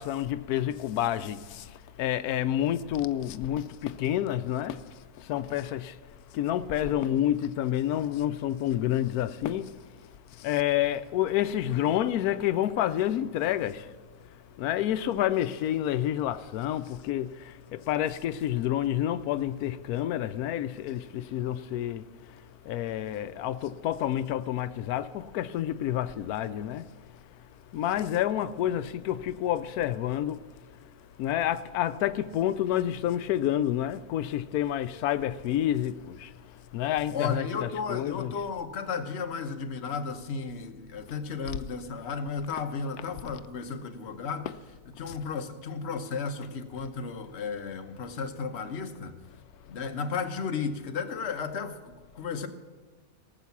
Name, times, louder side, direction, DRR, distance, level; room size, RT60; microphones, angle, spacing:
voice 1, 0.0-4.8 5.2-6.0 6.3-9.7 10.4-13.9 14.6-22.0 22.6-26.9 27.7-30.4 31.2-36.3 36.7-38.4 41.5-41.6 44.5-44.6 45.0-45.2, left 12 dB, 90° left, 1.1 m, -29 dB
voice 2, 37.1-44.5 45.0-49.2 49.7-52.5, left 5 dB, 50° left, 1.2 m, -34 dB
18.5 x 7.4 x 7.1 m
omnidirectional pair, 1.5 m